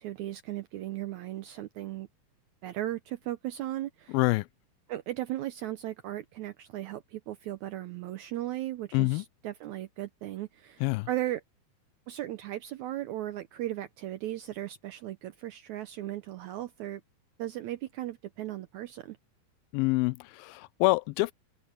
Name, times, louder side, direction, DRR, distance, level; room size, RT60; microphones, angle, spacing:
voice 1, 0.0-2.1 2.6-4.2 4.9-11.4 12.1-17.0 17.4-19.2, right 14 dB, 75° right, 1.7 m, -36 dB
voice 2, 4.1-4.5 8.9-9.2 10.8-11.1 19.7-21.3, left 23 dB, 90° left, 2.4 m, -26 dB
open air
omnidirectional pair, 4.1 m